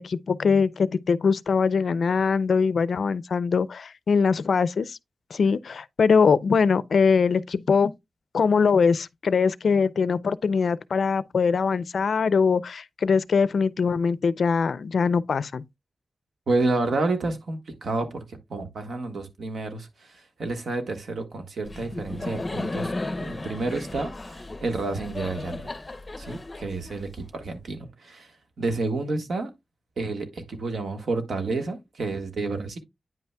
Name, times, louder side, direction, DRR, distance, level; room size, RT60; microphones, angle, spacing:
voice 1, 0.0-5.0 5.3-7.9 8.3-15.6, left 5 dB, 75° left, 0.3 m, -22 dB
voice 2, 16.5-22.9 23.2-25.7 26.2-28.3 28.6-29.5 30.0-32.8, right 3 dB, 80° right, 1.3 m, -30 dB
Laughter, 21.7-27.5, left 2 dB, 30° left, 0.6 m, -35 dB
9.4 x 5.5 x 2.2 m
wide cardioid pair, 105°, 0 cm